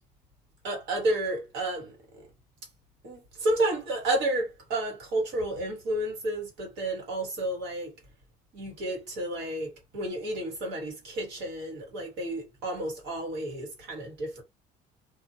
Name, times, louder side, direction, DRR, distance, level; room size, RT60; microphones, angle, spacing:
voice 1, 0.6-2.2 3.0-7.9 8.5-14.4, right 1 dB, 90° right, 1.7 m, -31 dB
2.4 x 2.4 x 2.8 m
cardioid pair, 110°, 17 cm